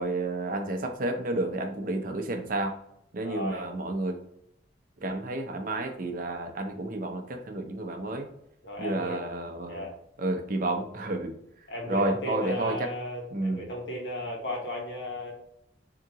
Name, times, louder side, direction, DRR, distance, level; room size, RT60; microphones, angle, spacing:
voice 1, 0.0-2.8 3.1-4.2 5.0-8.3 8.8-9.8 10.2-11.3 11.9-12.9 13.3-13.6, right 2 dB, 50° right, 5 dB, 0.6 m, -30 dB
voice 2, 3.2-3.7 8.6-9.2 9.7-9.9 11.7-15.3, left 1 dB, 70° left, -2 dB, 1.3 m, -35 dB
3.8 x 2.8 x 3.6 m, 0.77 s
head